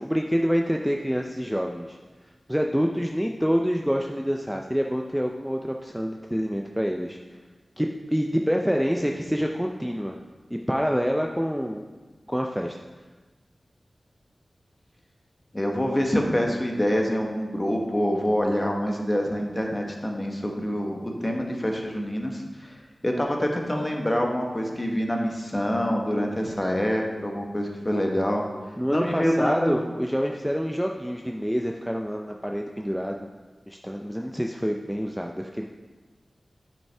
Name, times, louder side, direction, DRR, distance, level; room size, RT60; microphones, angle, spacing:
voice 1, 0.0-2.0 2.5-7.2 7.8-10.2 10.5-11.8 12.3-12.8 28.8-33.2 33.7-35.6, equal, 5° right, 1 dB, 0.5 m, -27 dB
voice 2, 15.5-22.8 23.0-28.5 28.9-29.7, equal, 25° left, 1 dB, 1.2 m, -26 dB
8.8 x 5.4 x 3.4 m, 1.3 s
wide cardioid pair, 55°, 0 cm